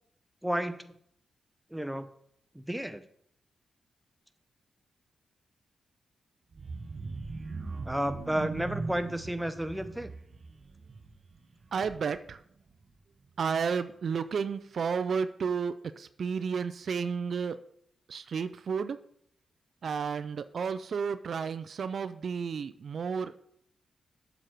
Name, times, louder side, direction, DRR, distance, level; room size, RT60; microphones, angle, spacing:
voice 1, 0.4-0.9 1.7-2.1 2.5-3.0 7.9-10.1, right 1 dB, 5° right, 10 dB, 0.8 m, -32 dB
sound 1, 6.5-12.3 12.7-12.9 13.2-13.3, right 3 dB, 50° right, 0.8 m, -40 dB
voice 2, 11.7-12.4 13.4-17.6 18.1-19.0 19.8-23.4, right 6 dB, 65° right, 12 dB, 0.4 m, -32 dB
7.4 x 6.4 x 4.5 m, 0.67 s
cardioid pair, 60°, 0 cm